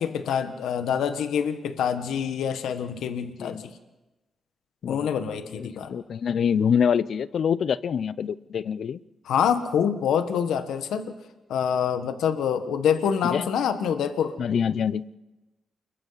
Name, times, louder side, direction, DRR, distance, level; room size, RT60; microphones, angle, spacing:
voice 1, 0.0-3.7 4.9-5.9 9.2-11.2 11.5-14.4, left 8 dB, 90° left, 8 dB, 1.3 m, -26 dB
voice 2, 5.6-9.0 13.2-13.5 14.4-15.0, left 7 dB, 65° left, 17 dB, 0.6 m, -25 dB
29.0 x 22.5 x 4.1 m, 1.1 s
cardioid pair, 85°, 0 cm